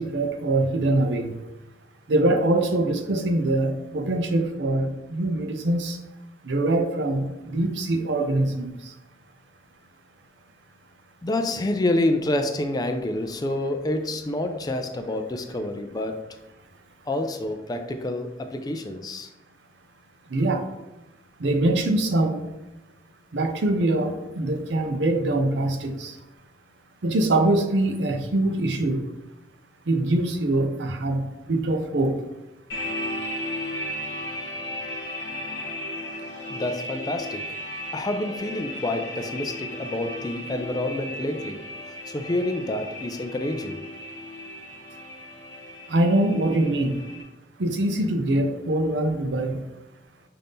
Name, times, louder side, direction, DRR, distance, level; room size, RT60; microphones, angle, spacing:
voice 1, 0.0-1.3 2.1-6.0 6.4-8.7 20.3-20.6 21.4-22.5 23.3-26.1 27.0-29.0 29.9-32.1 45.9-47.0 47.6-49.6, right 1 dB, 80° right, 0.6 m, -23 dB
voice 2, 11.2-16.3 17.1-19.3 36.5-37.6 37.9-41.6 42.1-43.8, left 1 dB, 20° left, 0.3 m, -28 dB
sound 1, 32.7-47.2, left 1 dB, 75° left, 1.2 m, -35 dB
5.6 x 2.6 x 3.5 m
head